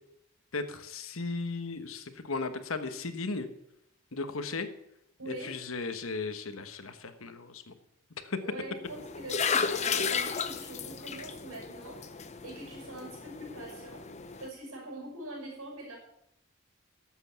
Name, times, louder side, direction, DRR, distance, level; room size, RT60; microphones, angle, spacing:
voice 1, 0.5-3.5 4.1-4.7 5.3-7.7 8.2-8.4, left 3 dB, 75° left, 9 dB, 1.2 m, -36 dB
voice 2, 5.2-5.5 8.4-12.0 12.4-14.1 14.4-16.0, right 1 dB, 90° right, 0 dB, 6.2 m, -43 dB
sound 1, 8.9-14.5, left 6 dB, 30° left, 0.7 m, -34 dB
12.0 x 8.0 x 7.1 m, 0.79 s
head